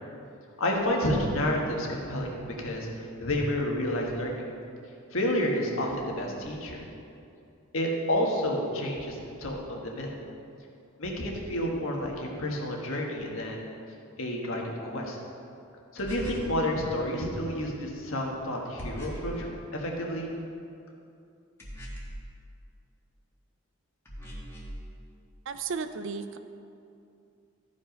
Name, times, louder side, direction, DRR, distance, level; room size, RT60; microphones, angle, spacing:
voice 1, 0.6-2.9 3.2-4.3 5.1-6.8 7.7-10.1 11.0-13.6 14.2-15.2 15.9-20.3, left 1 dB, 65° left, -1 dB, 1.5 m, -30 dB
sound 1, 16.0-16.6 18.8-19.4 21.6-22.3 24.1-24.8, equal, 10° left, 1.7 m, -41 dB
voice 2, 25.5-26.4, right 5 dB, 60° right, 10 dB, 0.5 m, -34 dB
13.5 x 5.5 x 5.2 m, 2.6 s
head